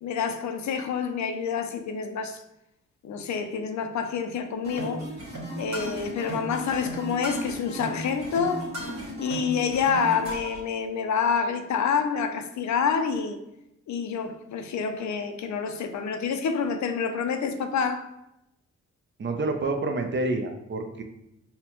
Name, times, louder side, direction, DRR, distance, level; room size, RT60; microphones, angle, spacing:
voice 1, 0.0-2.4 3.0-5.0 5.6-8.6 9.2-13.4 13.9-18.1, left 6 dB, 65° left, 0.5 m, -27 dB
sound 1, 4.6-10.6, right 1 dB, 60° right, 1.5 m, -35 dB
voice 2, 19.2-21.0, right 2 dB, 40° right, 0.5 m, -28 dB
4.1 x 2.2 x 2.9 m
cardioid pair, 60°, 31 cm